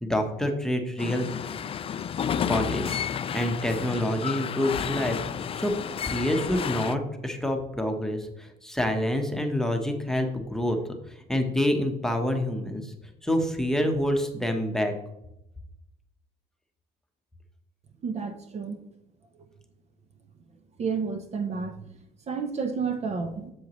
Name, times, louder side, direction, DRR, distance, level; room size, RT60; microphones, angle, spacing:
voice 1, 0.0-1.2 2.4-5.7 6.0-10.8 11.1-12.9 13.2-14.9, left 1 dB, 5° left, 3 dB, 1.1 m, -27 dB
sound 1, 1.0-7.0, left 8 dB, 35° left, 0.4 m, -31 dB
voice 2, 18.0-18.8 20.8-22.0 22.3-23.5, right 5 dB, 40° right, 7 dB, 0.8 m, -31 dB
8.0 x 7.3 x 3.1 m, 0.85 s
cardioid pair, 110°, 17 cm